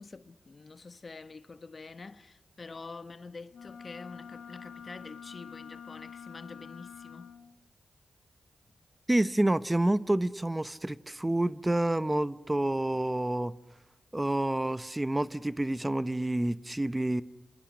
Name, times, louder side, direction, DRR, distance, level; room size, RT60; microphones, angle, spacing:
voice 1, 0.0-7.4, left 3 dB, 50° left, 1.1 m, -46 dB
Wind instrument woodwind instrument, 3.5-7.6, left 7 dB, 80° left, 1.1 m, -47 dB
voice 2, 9.1-13.5 14.1-17.2, right 1 dB, 20° right, 0.9 m, -28 dB
27.5 x 25.5 x 6.4 m
cardioid pair, 45°, 0 cm